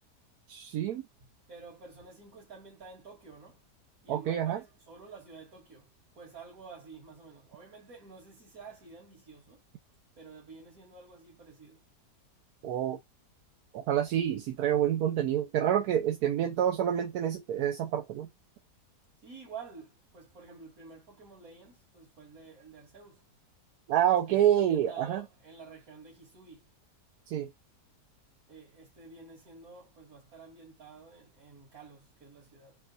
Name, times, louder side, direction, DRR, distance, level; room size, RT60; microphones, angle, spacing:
voice 1, 0.5-1.0 4.1-4.6 12.6-13.0 13.7-18.3 23.9-25.2 27.3-27.5, right 10 dB, 75° right, 1.1 m, -27 dB
voice 2, 1.2-3.6 4.0-9.6 10.2-11.9 19.2-23.3 24.3-26.7 28.5-32.8, right 4 dB, 60° right, 2.7 m, -50 dB
4.4 x 2.4 x 3.9 m
omnidirectional pair, 1.7 m